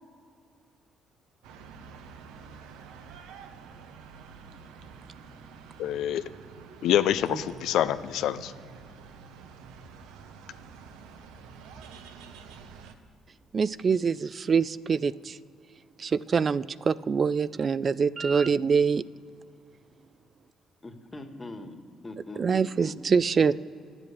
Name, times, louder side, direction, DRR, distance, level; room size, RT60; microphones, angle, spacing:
sound 1, 1.4-12.9, right 5 dB, 85° right, 0.9 m, -48 dB
voice 1, 5.8-6.2 6.8-8.5, left 11 dB, 75° left, 13 dB, 0.4 m, -26 dB
voice 2, 13.5-15.4 16.0-19.0 22.4-23.6, right 5 dB, 45° right, 18 dB, 0.3 m, -25 dB
voice 3, 20.8-22.9, left 2 dB, 20° left, 6 dB, 1.6 m, -42 dB
10.5 x 7.9 x 8.4 m, 2.4 s
supercardioid pair, 65°, 0 cm